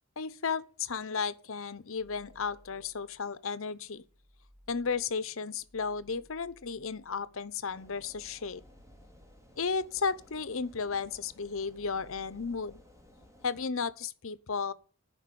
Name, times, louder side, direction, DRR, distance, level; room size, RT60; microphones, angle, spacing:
voice 1, 0.2-4.0 4.7-8.6 9.6-12.8 13.4-14.7, left 5 dB, 65° left, 0.8 m, -34 dB
sound 1, 1.9-3.4 3.8-10.3 10.6-12.9, equal, 35° right, 3.2 m, -62 dB
sound 2, 7.7-13.7, left 1 dB, 15° right, 2.5 m, -58 dB
11.5 x 5.4 x 8.6 m
head